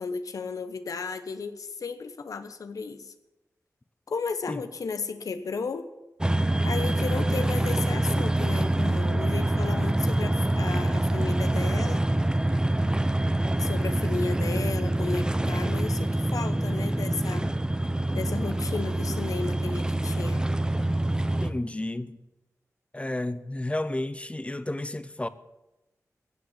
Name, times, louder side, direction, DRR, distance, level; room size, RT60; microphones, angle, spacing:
voice 1, 0.0-3.1 4.1-5.9 6.6-12.0 13.6-17.5 18.1-20.5, left 4 dB, 85° left, 1.1 m, -34 dB
sound 1, 6.2-21.5, right 1 dB, 15° right, 0.8 m, -25 dB
voice 2, 21.4-22.2 22.9-25.3, left 1 dB, 20° left, 0.7 m, -31 dB
16.0 x 7.7 x 8.2 m
wide cardioid pair, 65°, 6 cm